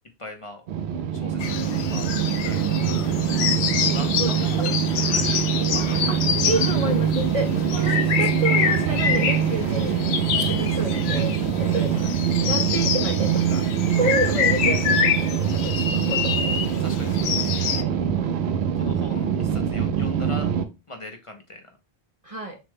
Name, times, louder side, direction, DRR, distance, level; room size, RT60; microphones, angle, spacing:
voice 1, 0.2-0.6 1.1-2.1 2.4-3.5 3.9-6.3 10.9-11.5 16.8-17.9 18.8-20.5 20.9-21.8, left 2 dB, 35° left, 3 dB, 0.7 m, -41 dB
sound 1, 0.7-20.6, right 8 dB, 80° right, 0.9 m, -24 dB
sound 2, 1.4-17.8, left 7 dB, 80° left, 0.9 m, -27 dB
voice 2, 6.4-10.0 10.4-11.3 11.6-12.1 12.4-13.6 14.0-16.6 18.0-18.3 22.2-22.6, right 2 dB, 45° right, 3 dB, 0.5 m, -29 dB
6.2 x 2.2 x 3.4 m, 0.27 s
omnidirectional pair, 1.1 m